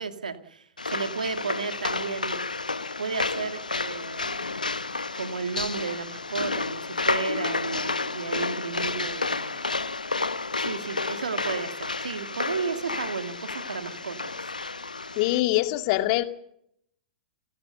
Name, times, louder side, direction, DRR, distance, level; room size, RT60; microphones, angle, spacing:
voice 1, 0.0-2.4 3.0-4.5 5.1-9.8 10.6-14.4, right 5 dB, 80° right, 9 dB, 2.3 m, -33 dB
sound 1, 0.8-15.4, left 3 dB, 90° left, 1.0 m, -31 dB
voice 2, 15.2-16.2, left 17 dB, 50° left, 9 dB, 2.2 m, -23 dB
29.0 x 17.5 x 6.7 m, 0.72 s
figure-of-eight pair, 100°, 4 cm